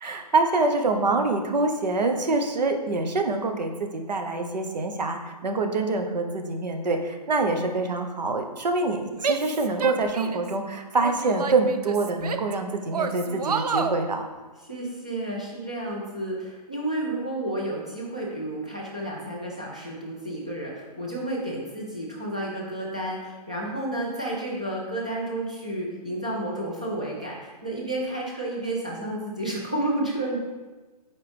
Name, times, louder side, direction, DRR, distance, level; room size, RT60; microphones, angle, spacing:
voice 1, 0.0-14.3, right 3 dB, 85° right, 5 dB, 1.0 m, -25 dB
Female speech woman speaking / Yell, 9.2-10.5 11.0-12.5 12.9-14.0, right 5 dB, 65° right, 0.5 m, -29 dB
voice 2, 14.6-30.4, right 1 dB, 10° right, -4 dB, 0.3 m, -31 dB
7.4 x 4.7 x 3.4 m, 1.3 s
hypercardioid pair, 180°, 21 cm